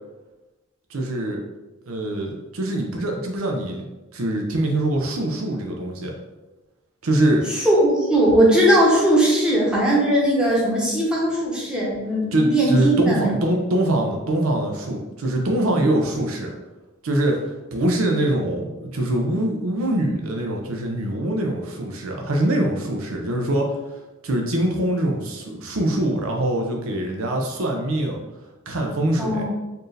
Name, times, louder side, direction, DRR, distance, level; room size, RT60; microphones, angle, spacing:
voice 1, 0.9-1.4 1.9-6.1 7.0-7.5 12.3-16.5 17.0-28.2 28.7-29.4, right 1 dB, 75° right, 1 dB, 0.6 m, -23 dB
voice 2, 7.6-13.3 29.2-29.4, right 1 dB, 5° right, -6 dB, 1.0 m, -19 dB
4.4 x 2.6 x 3.2 m, 1.1 s
head